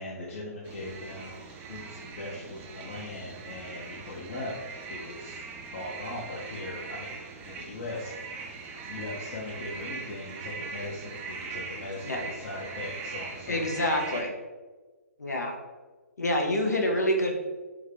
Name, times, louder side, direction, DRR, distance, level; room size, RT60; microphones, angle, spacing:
voice 1, 0.0-4.6 4.9-5.4 5.7-8.5 8.8-13.9, left 2 dB, 50° left, -6 dB, 0.7 m, -39 dB
sound 1, 0.6-14.2, right 4 dB, 20° right, 0.4 m, -41 dB
voice 2, 13.5-14.3 15.2-15.6 16.2-17.4, left 1 dB, 85° left, 1 dB, 0.7 m, -27 dB
3.6 x 2.2 x 3.3 m, 1.3 s
hypercardioid pair, 135°, 9 cm